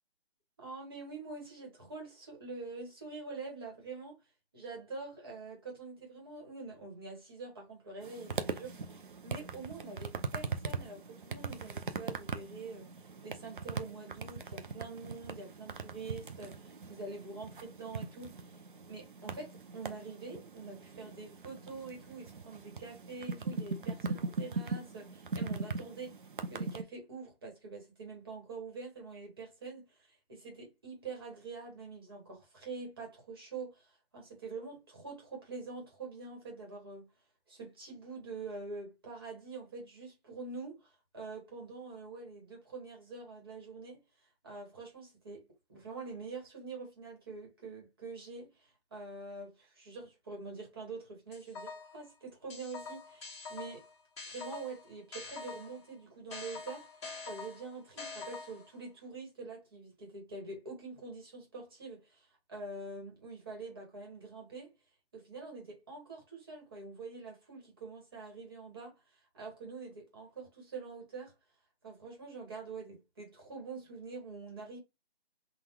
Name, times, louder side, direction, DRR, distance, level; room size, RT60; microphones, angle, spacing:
voice 1, 0.6-4.2 4.5-12.9 13.2-18.5 18.9-26.1 26.5-37.1 37.5-44.0 44.4-45.4 45.7-53.8 54.3-64.7 65.1-71.3 71.8-74.8, right 3 dB, 25° right, 1.2 m, -45 dB
sound 1, 8.0-26.8, right 4 dB, 55° right, 0.5 m, -40 dB
sound 2, 51.3-52.0 52.5-55.8 56.3-58.8, left 4 dB, 30° left, 1.4 m, -45 dB
3.8 x 2.3 x 4.2 m
hypercardioid pair, 170°, 31 cm